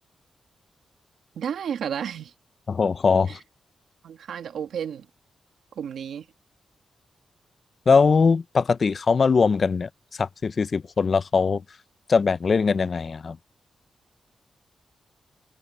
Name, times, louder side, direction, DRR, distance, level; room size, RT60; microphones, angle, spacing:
voice 1, 1.3-2.3 3.3-3.4 4.0-5.1 5.7-6.3, right 8 dB, 85° right, 1.6 m, -32 dB
voice 2, 2.7-3.4 7.9-9.9 10.2-11.6 12.1-13.4, left 5 dB, 35° left, 0.4 m, -21 dB
wide cardioid pair, 180°, 0 cm